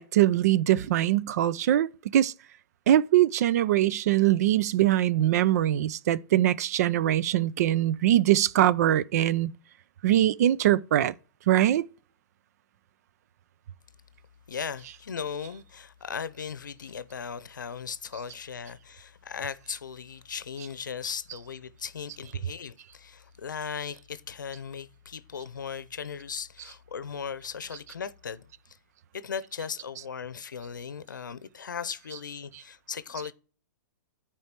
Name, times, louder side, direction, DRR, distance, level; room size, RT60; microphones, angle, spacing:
voice 1, 0.0-2.3 2.9-9.5 10.0-11.1 11.5-11.8, right 13 dB, 55° right, 0.4 m, -22 dB
voice 2, 14.5-28.8 29.1-33.3, left 6 dB, 80° left, 0.7 m, -37 dB
12.5 x 4.6 x 2.9 m
hypercardioid pair, 120°, 10 cm